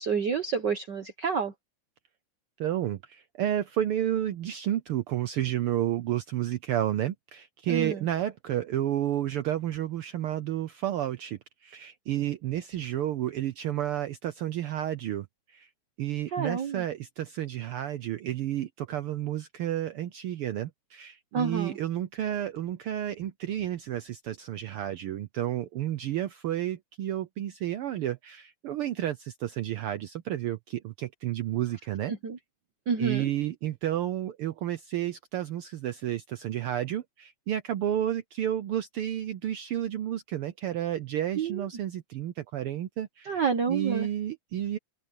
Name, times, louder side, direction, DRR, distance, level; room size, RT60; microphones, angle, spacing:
voice 1, 0.0-1.5 7.7-8.0 16.3-16.8 21.3-21.8 32.1-32.4 32.9-33.2 41.4-41.7 43.3-44.1, right 6 dB, 65° right, 1.1 m, -29 dB
voice 2, 2.6-15.7 16.0-32.1 33.0-44.8, right 12 dB, 85° right, 1.2 m, -31 dB
open air
omnidirectional pair, 3.4 m